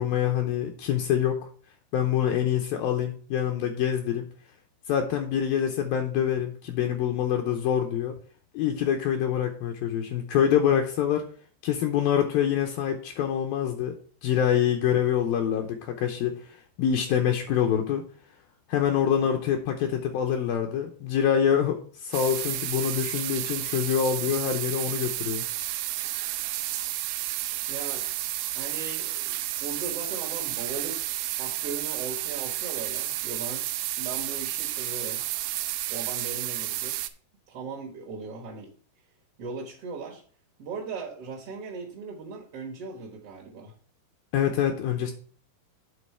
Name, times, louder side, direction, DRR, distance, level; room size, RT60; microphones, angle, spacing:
voice 1, 0.0-1.5 1.9-4.3 4.9-8.2 8.5-11.2 11.6-14.0 14.2-18.0 18.7-25.5 44.3-45.1, left 9 dB, 75° left, 3 dB, 2.3 m, -25 dB
sound 1, 22.1-37.1, right 15 dB, 80° right, 2.3 m, -31 dB
voice 2, 27.7-28.2 28.5-31.1 31.3-33.7 34.0-35.2 35.9-37.1 37.5-38.7 39.4-40.2 40.6-43.7, right 4 dB, 65° right, -1 dB, 1.5 m, -38 dB
8.5 x 4.0 x 6.7 m, 0.44 s
omnidirectional pair, 4.7 m